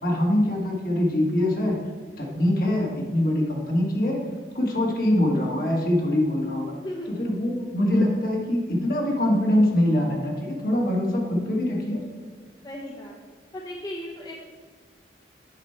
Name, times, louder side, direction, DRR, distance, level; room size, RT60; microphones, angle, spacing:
voice 1, 0.0-1.8 2.2-4.2 4.5-6.7 7.2-12.0, left 1 dB, 55° left, -1 dB, 1.6 m, -23 dB
voice 2, 6.7-7.4 12.6-13.2 13.5-14.4, equal, 20° left, -1 dB, 0.7 m, -36 dB
9.2 x 5.1 x 4.5 m, 1.5 s
head